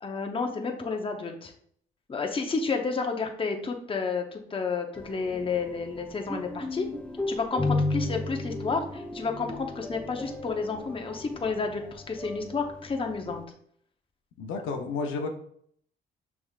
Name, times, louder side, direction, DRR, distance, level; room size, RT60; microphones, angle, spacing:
voice 1, 0.0-1.5 2.1-6.9 7.3-13.4, left 4 dB, 25° left, 3 dB, 0.8 m, -31 dB
sound 1, 4.9-13.4, left 2 dB, 5° left, 0.5 m, -34 dB
voice 2, 14.4-15.3, left 4 dB, 85° left, 3 dB, 0.7 m, -31 dB
6.1 x 3.5 x 2.4 m, 0.63 s
cardioid pair, 90°, 20 cm